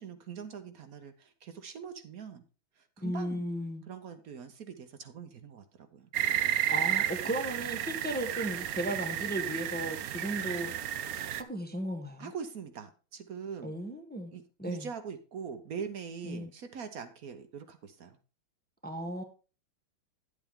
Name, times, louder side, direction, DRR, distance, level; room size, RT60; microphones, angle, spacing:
voice 1, 0.0-2.4 2.8-3.4 3.9-6.1 12.2-13.7 14.3-18.2, right 6 dB, 55° right, 9 dB, 1.0 m, -43 dB
voice 2, 3.0-3.8 6.7-10.7 11.1-12.3 13.6-14.3 14.6-14.9 16.2-16.5 18.8-19.2, right 1 dB, 10° left, 5 dB, 0.5 m, -35 dB
sound 1, 6.1-11.4, right 11 dB, 85° right, 0.7 m, -32 dB
10.5 x 8.0 x 3.6 m, 0.34 s
omnidirectional pair, 2.3 m